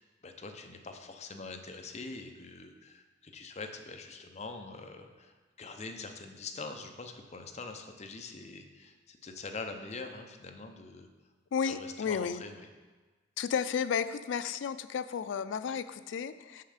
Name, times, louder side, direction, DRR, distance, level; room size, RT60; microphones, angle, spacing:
voice 1, 0.0-11.1 11.6-12.7, left 3 dB, 35° left, 5 dB, 0.6 m, -44 dB
voice 2, 11.5-12.4 13.4-16.6, left 7 dB, 85° left, 12 dB, 0.3 m, -33 dB
6.4 x 5.6 x 5.0 m, 1.3 s
head